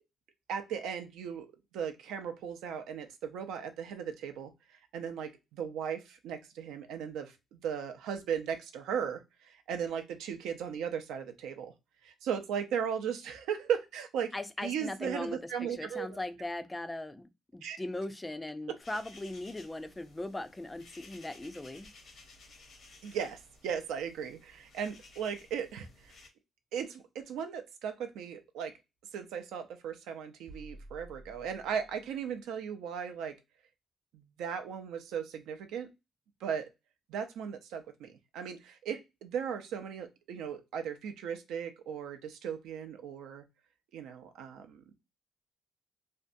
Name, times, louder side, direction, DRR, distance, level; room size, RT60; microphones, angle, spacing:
voice 1, 0.5-1.5 1.7-4.5 4.9-11.7 12.0-14.3 14.6-16.1 17.6-17.8 23.0-26.1 26.7-28.7 29.1-33.4 34.1-35.9 36.4-36.7 37.1-43.4 43.9-44.8, right 7 dB, 90° right, 0.4 m, -37 dB
voice 2, 14.3-21.9, left 2 dB, 15° left, 0.3 m, -39 dB
sound 1, 18.8-26.3, left 3 dB, 60° left, 0.7 m, -56 dB
sound 2, 30.5-32.3, right 1 dB, 60° right, 0.9 m, -52 dB
2.6 x 2.2 x 2.5 m
cardioid pair, 90°, 0 cm